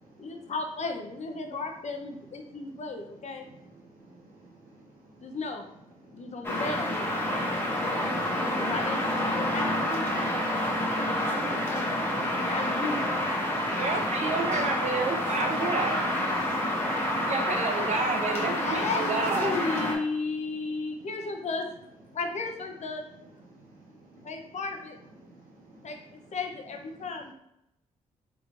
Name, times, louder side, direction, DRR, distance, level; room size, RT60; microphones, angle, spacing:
voice 1, 0.2-3.5 5.2-5.6 6.1-7.1 7.9-10.1 11.5-11.9 12.2-13.1 18.6-21.7 22.1-23.0 24.2-25.0 25.8-27.3, left 3 dB, 55° left, 4 dB, 0.7 m, -34 dB
voice 2, 3.9-5.3 6.1-6.3 23.5-24.3 25.2-25.9, right 2 dB, 80° right, -2 dB, 1.1 m, -55 dB
sound 1, 6.4-20.0, left 1 dB, 15° left, 1.2 m, -28 dB
voice 3, 13.5-16.0 17.2-19.6, right 3 dB, 55° right, 2 dB, 0.9 m, -30 dB
3.6 x 3.4 x 2.5 m, 0.82 s
supercardioid pair, 55°, 14 cm